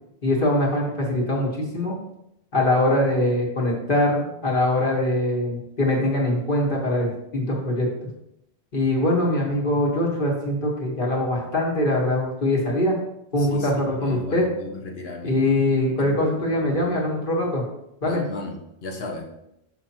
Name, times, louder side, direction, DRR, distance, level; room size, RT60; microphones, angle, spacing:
voice 1, 0.2-2.0 2.5-7.9 8.7-12.9 13.3-14.4 15.2-17.6 18.0-18.2, left 1 dB, 55° left, -2 dB, 1.8 m, -22 dB
voice 2, 13.4-15.5 16.0-16.5 16.7-16.8 18.0-19.3, left 2 dB, 75° left, 0 dB, 1.2 m, -35 dB
6.8 x 5.9 x 3.0 m, 0.82 s
omnidirectional pair, 1.0 m